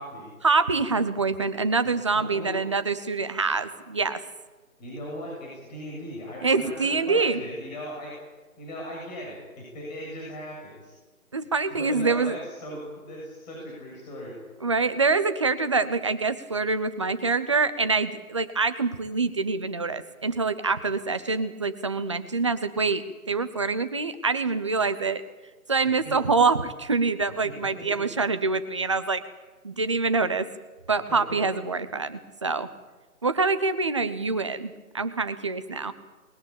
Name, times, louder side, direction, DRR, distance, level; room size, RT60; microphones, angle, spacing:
voice 1, 0.4-4.2 6.4-7.4 11.3-12.3 14.6-25.2 25.7-29.2 29.6-30.5 30.9-32.7 33.2-35.9, right 4 dB, 20° right, 11 dB, 0.7 m, -25 dB
voice 2, 2.3-2.6 4.8-8.2 8.6-10.9 11.7-14.3 25.8-26.1 27.4-27.5, equal, 30° left, -3 dB, 7.5 m, -38 dB
21.0 x 19.5 x 8.9 m, 1.2 s
figure-of-eight pair, 150°, 43 cm